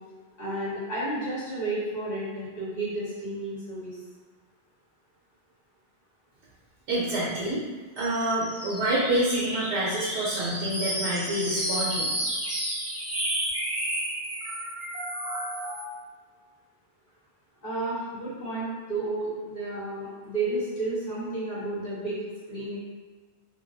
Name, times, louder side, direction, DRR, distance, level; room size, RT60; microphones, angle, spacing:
voice 1, 0.4-3.9 17.6-22.8, right 2 dB, 45° left, -9 dB, 1.1 m, -32 dB
voice 2, 6.9-7.7 8.0-12.1, right 1 dB, 80° right, -6 dB, 0.9 m, -27 dB
sound 1, 8.0-15.9, right 1 dB, 25° right, 0.3 m, -32 dB
2.3 x 2.2 x 2.5 m, 1.4 s
omnidirectional pair, 1.1 m